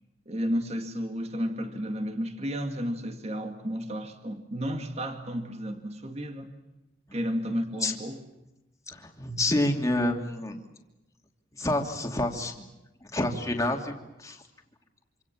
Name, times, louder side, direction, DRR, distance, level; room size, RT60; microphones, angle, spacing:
voice 1, 0.3-6.5 7.1-8.2, equal, 30° right, 2.0 m, -32 dB
voice 2, 8.9-10.6 11.6-12.7 13.1-13.9 14.2-14.4, left 1 dB, 15° left, 2.8 m, -28 dB
27.0 x 26.0 x 7.4 m
head